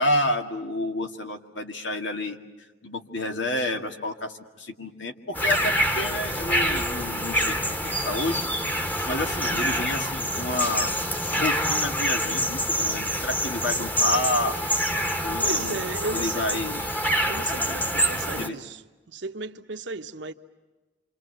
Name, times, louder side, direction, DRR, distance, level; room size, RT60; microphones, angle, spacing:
voice 1, 0.0-2.4 2.8-8.5 9.1-10.9 11.4-14.6 15.2-16.8 18.4-18.6, left 1 dB, 80° left, 2.1 m, -29 dB
sound 1, 5.3-18.5, equal, 10° left, 1.4 m, -26 dB
voice 2, 15.4-16.6 17.3-18.8 19.1-20.3, right 3 dB, 70° right, 1.1 m, -35 dB
28.0 x 26.5 x 7.9 m
head